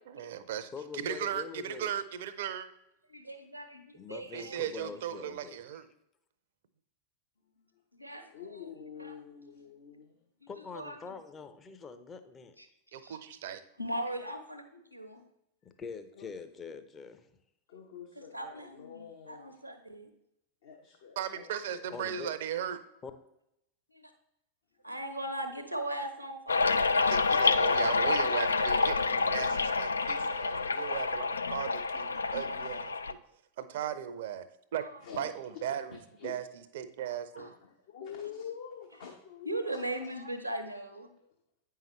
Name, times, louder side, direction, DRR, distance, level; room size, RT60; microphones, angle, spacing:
voice 1, 0.1-2.7 4.3-5.9 12.9-13.6 21.2-22.8 27.1-33.2 33.6-34.4 34.7-34.8 35.2-36.4 36.7-37.5, right 9 dB, 55° right, 12 dB, 0.6 m, -37 dB
voice 2, 0.7-1.9 3.9-5.6 10.5-12.6 15.6-17.3 21.9-22.3 23.0-23.1, left 5 dB, 20° left, 9 dB, 0.6 m, -44 dB
voice 3, 3.1-4.6 4.9-5.0 7.9-8.2 8.6-8.7 9.0-9.1 10.4-10.5 10.7-11.0 12.6-12.7 13.0-13.2 13.8-15.2 18.3-20.1 23.9-24.1 24.8-27.2 27.5-27.6 34.8-34.9 37.3-37.5 39.4-41.1, right 1 dB, 90° right, 7 dB, 0.9 m, -39 dB
voice 4, 8.0-10.2 15.0-15.1 15.6-15.8 16.2-16.3 17.7-19.7 20.6-22.2 29.5-29.6 31.7-31.9 35.0-35.3 35.9-36.3 37.4-40.2, left 7 dB, 60° left, 1 dB, 0.9 m, -47 dB
sound 1, 26.5-33.1, left 4 dB, 75° left, 0.3 m, -28 dB
9.0 x 5.6 x 3.1 m, 0.81 s
figure-of-eight pair, 90°, 0 cm